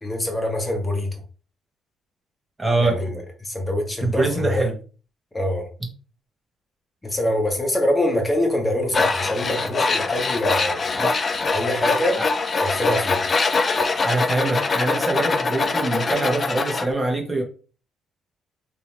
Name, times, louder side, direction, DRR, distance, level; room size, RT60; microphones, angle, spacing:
voice 1, 0.0-1.2 2.8-3.1 3.4-4.7 5.3-5.7 7.0-10.8 11.5-12.2 12.6-13.2, left 1 dB, 20° left, 1 dB, 1.4 m, -24 dB
voice 2, 2.6-3.2 4.0-4.7 10.9-11.1 14.0-17.4, right 2 dB, 15° right, 1 dB, 1.3 m, -24 dB
Tools, 8.9-16.9, left 4 dB, 40° left, 0.5 m, -23 dB
3.7 x 2.9 x 3.0 m, 0.37 s
cardioid pair, 90°, 0 cm